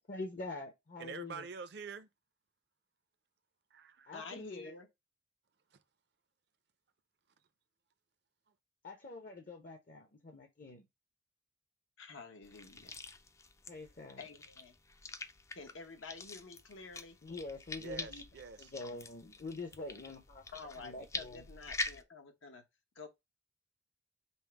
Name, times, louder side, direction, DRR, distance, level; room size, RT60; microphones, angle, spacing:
voice 1, 0.1-1.5 4.1-4.7 8.8-10.8 13.7-14.2 17.2-18.2 18.6-20.4 20.8-21.5, left 2 dB, 45° left, 0.6 m, -45 dB
voice 2, 1.0-2.1 3.7-4.1 17.8-18.7, right 5 dB, 55° right, 0.5 m, -46 dB
voice 3, 4.1-4.9 12.0-13.0 14.2-14.7 15.5-17.2 20.5-22.6 22.9-23.1, left 4 dB, 85° left, 1.0 m, -49 dB
sound 1, 12.4-22.0, left 2 dB, 15° left, 0.3 m, -45 dB
5.4 x 2.0 x 4.5 m
head